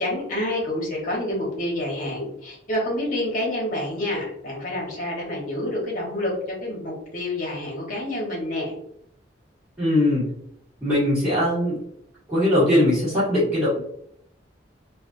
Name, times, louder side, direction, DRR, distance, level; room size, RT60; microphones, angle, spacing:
voice 1, 0.0-8.7, left 1 dB, 45° left, -2 dB, 1.2 m, -28 dB
voice 2, 9.8-10.3 10.8-11.8 12.3-13.8, left 1 dB, 15° right, -14 dB, 1.4 m, -20 dB
3.3 x 2.5 x 2.5 m, 0.72 s
head